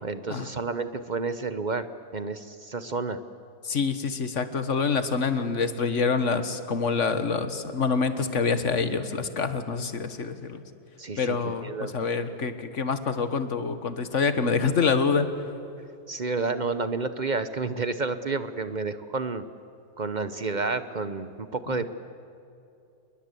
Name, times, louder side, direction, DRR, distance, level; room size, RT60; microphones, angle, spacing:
voice 1, 0.0-1.9 2.1-3.2 11.0-11.9 16.1-19.5 20.0-21.8, right 4 dB, 50° right, 11 dB, 0.5 m, -30 dB
voice 2, 3.6-10.6 11.2-15.3, left 5 dB, 45° left, 10 dB, 1.7 m, -26 dB
28.0 x 21.5 x 8.3 m, 2.7 s
omnidirectional pair, 1.9 m